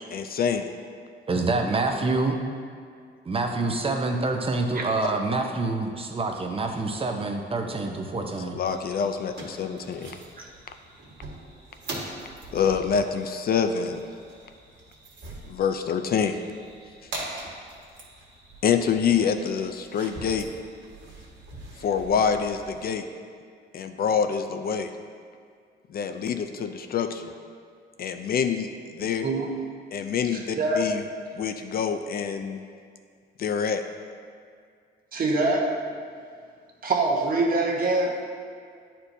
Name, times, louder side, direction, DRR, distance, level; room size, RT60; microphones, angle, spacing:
voice 1, 0.1-0.7 5.0-5.1 8.5-10.1 12.5-14.0 15.4-16.4 18.6-20.5 21.8-23.0 23.7-24.9 25.9-27.3 28.0-28.7 28.9-29.3 29.9-31.0 31.4-32.6 33.4-33.8, left 7 dB, 50° left, 7 dB, 0.4 m, -26 dB
voice 2, 1.3-2.4 3.3-8.6, right 3 dB, 30° right, 3 dB, 0.7 m, -26 dB
sound 1, 8.6-22.8, right 2 dB, 65° right, 1.5 m, -42 dB
voice 3, 35.1-35.8 36.8-38.2, right 2 dB, 45° right, 0 dB, 1.0 m, -24 dB
9.5 x 4.3 x 2.7 m, 2.2 s
cardioid pair, 90°, 20 cm